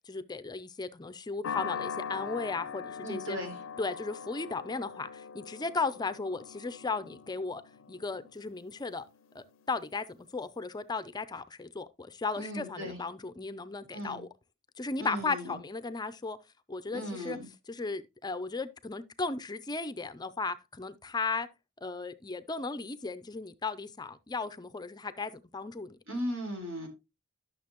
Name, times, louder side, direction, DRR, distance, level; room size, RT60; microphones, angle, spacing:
voice 1, 0.1-3.4 3.8-7.6 7.9-9.0 9.3-14.3 14.8-16.4 16.7-17.4 17.7-21.5 21.8-26.0, left 3 dB, 20° left, 0.5 m, -36 dB
sound 1, 1.4-9.9, left 6 dB, 70° left, 0.6 m, -42 dB
voice 2, 3.0-3.6 12.3-13.0 13.9-14.2 15.0-15.6 16.9-17.5 26.1-26.9, equal, 80° right, 4.0 m, -37 dB
11.5 x 6.6 x 2.9 m
head